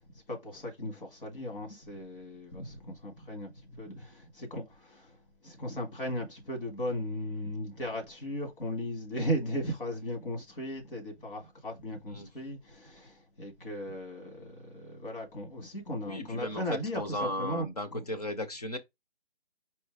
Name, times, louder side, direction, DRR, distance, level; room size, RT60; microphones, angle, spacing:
voice 1, 0.0-18.1, equal, 50° left, 2.0 m, -37 dB
voice 2, 16.1-18.8, left 1 dB, 35° left, 0.7 m, -35 dB
4.4 x 3.2 x 3.4 m
hypercardioid pair, 170°, 33 cm